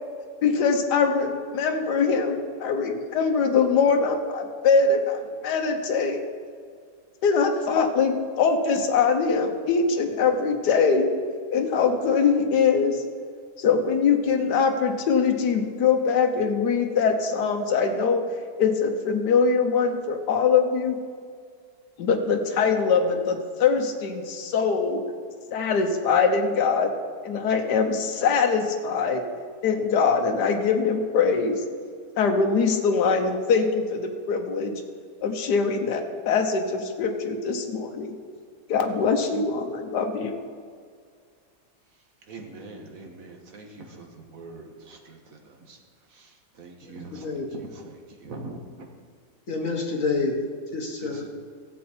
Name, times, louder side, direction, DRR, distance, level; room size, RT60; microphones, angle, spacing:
voice 1, 0.4-6.2 7.2-11.1 11.5-13.0 13.6-18.3 18.6-21.0 22.0-25.0 25.5-26.9 27.2-29.2 29.6-31.6 32.2-34.7 35.2-38.2 38.7-40.4, left 5 dB, 70° left, 4 dB, 1.5 m, -23 dB
voice 2, 42.3-45.8 46.1-48.9 51.0-51.3, right 2 dB, 55° right, 2 dB, 1.7 m, -43 dB
voice 3, 46.8-47.5 49.5-51.3, left 3 dB, 50° left, 1 dB, 1.7 m, -29 dB
15.5 x 7.4 x 4.4 m, 2.1 s
omnidirectional pair, 1.9 m